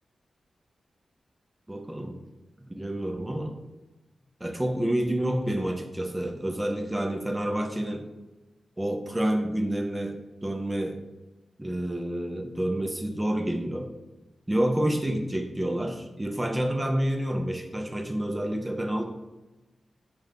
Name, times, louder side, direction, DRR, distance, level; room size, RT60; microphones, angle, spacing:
voice 1, 1.7-2.2 2.7-3.5 4.4-8.1 8.8-11.0 11.6-13.9 14.5-19.1, right 1 dB, 15° right, 3 dB, 0.5 m, -28 dB
4.9 x 2.2 x 3.7 m, 1.1 s
cardioid pair, 65°, 0 cm